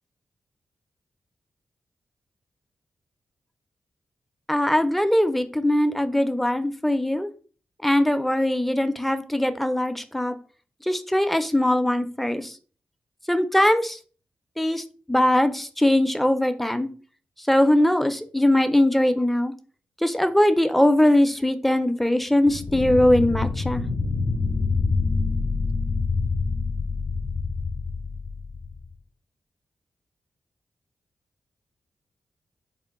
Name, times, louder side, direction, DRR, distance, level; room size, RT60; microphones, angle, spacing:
voice 1, 4.5-7.3 7.8-10.3 10.8-12.6 13.3-14.0 14.6-16.9 17.4-19.5 20.0-23.8, left 1 dB, 5° left, 9 dB, 0.4 m, -21 dB
sound 1, 22.5-28.9, left 4 dB, 55° left, 0.5 m, -26 dB
3.7 x 2.0 x 3.6 m, 0.39 s
cardioid pair, 70°, 3 cm